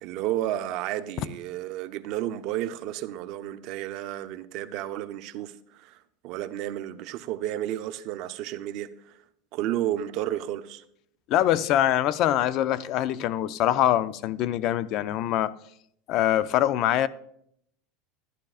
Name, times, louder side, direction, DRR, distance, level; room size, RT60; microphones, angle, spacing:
voice 1, 0.0-9.2 9.5-10.8, right 12 dB, 55° right, 0.6 m, -32 dB
voice 2, 11.3-15.5 16.1-17.1, left 12 dB, 50° left, 0.5 m, -24 dB
11.5 x 11.5 x 2.4 m
supercardioid pair, 115°, 0 cm